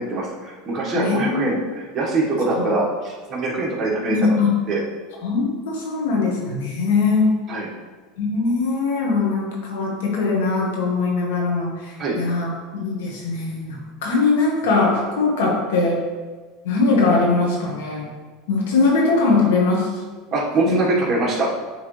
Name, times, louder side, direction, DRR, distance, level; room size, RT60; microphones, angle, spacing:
voice 1, 0.0-4.4 4.7-4.8 7.5-7.7 12.0-12.2 20.3-21.5, right 2 dB, 30° right, -3 dB, 1.6 m, -23 dB
voice 2, 0.9-1.4 2.5-2.8 4.1-4.6 5.2-7.3 8.2-16.0 16.6-18.1 18.5-19.9 20.6-20.8, left 3 dB, 85° left, -2 dB, 1.8 m, -21 dB
8.4 x 3.7 x 3.3 m, 1.4 s
supercardioid pair, 125°, 0 cm